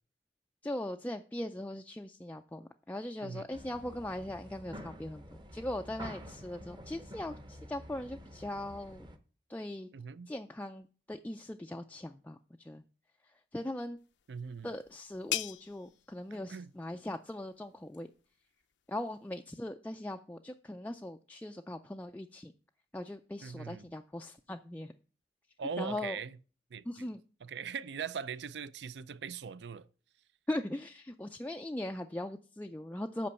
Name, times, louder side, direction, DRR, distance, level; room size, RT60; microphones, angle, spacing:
voice 1, 0.6-9.1 9.5-9.9 10.3-12.8 13.3-14.0 14.6-18.1 18.9-22.5 22.9-24.9 25.8-26.2 26.9-27.2 30.5-33.3, left 1 dB, 10° left, 0.3 m, -40 dB
sound 1, 3.5-9.2, equal, 25° right, 0.8 m, -48 dB
voice 2, 9.9-10.3 14.3-14.7 16.3-16.7 23.4-23.9 25.6-26.4 26.7-27.1 27.4-29.9, right 6 dB, 70° right, 0.4 m, -41 dB
sound 2, 14.0-19.4, left 13 dB, 75° left, 0.5 m, -44 dB
8.4 x 5.1 x 6.9 m
head